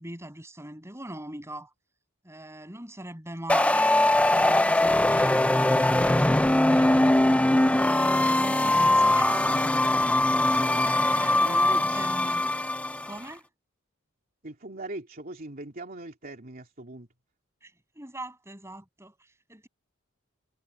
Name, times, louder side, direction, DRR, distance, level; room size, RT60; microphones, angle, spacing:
voice 1, 0.0-1.7 2.2-7.1 7.4-9.6 10.4-12.4 13.0-13.4 17.6-19.7, right 1 dB, 15° right, 7.0 m, -41 dB
sound 1, 3.5-13.1, left 1 dB, 5° left, 0.5 m, -22 dB
voice 2, 11.4-12.1 14.4-17.1, right 2 dB, 45° right, 2.9 m, -40 dB
head